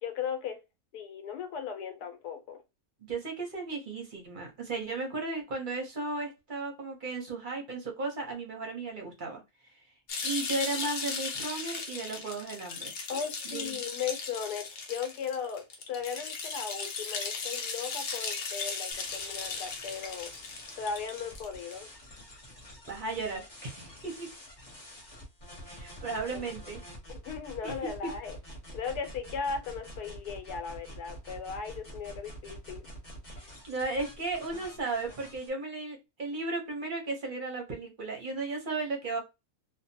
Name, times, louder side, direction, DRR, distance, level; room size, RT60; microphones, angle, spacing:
voice 1, 0.0-0.6 0.9-2.6 13.1-20.3 20.8-21.9 26.3-26.5 27.1-28.4 28.7-32.9, left 6 dB, 80° left, 1.2 m, -37 dB
voice 2, 3.0-9.4 9.7-9.8 10.2-12.9 13.4-13.8 22.9-24.3 25.7-26.8 27.6-27.7 33.6-39.2, right 3 dB, 45° right, 0.6 m, -35 dB
sound 1, 10.1-21.7, left 4 dB, 60° left, 0.8 m, -37 dB
sound 2, 18.9-35.5, equal, 35° left, 1.0 m, -48 dB
2.7 x 2.2 x 2.6 m
omnidirectional pair, 1.7 m